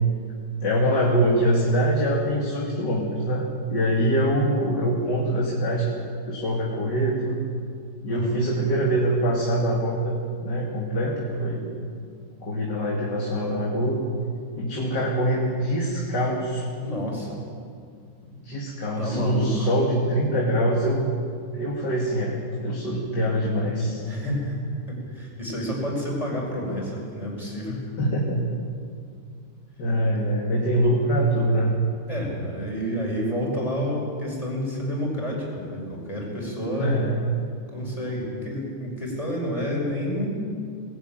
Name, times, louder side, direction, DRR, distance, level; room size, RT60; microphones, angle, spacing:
voice 1, 0.6-5.9 6.3-7.4 8.0-10.1 10.4-11.7 12.4-14.0 14.6-16.6 18.2-21.1 21.5-24.0 28.0-28.5 29.8-31.8 36.8-37.2, right 1 dB, 70° left, -3 dB, 3.0 m, -24 dB
voice 2, 8.1-8.4 16.8-17.4 19.0-19.7 24.0-24.6 24.9-27.8 32.1-37.0 37.7-40.3, equal, 20° left, -2 dB, 5.9 m, -29 dB
20.0 x 16.5 x 9.2 m, 2.3 s
omnidirectional pair, 1.9 m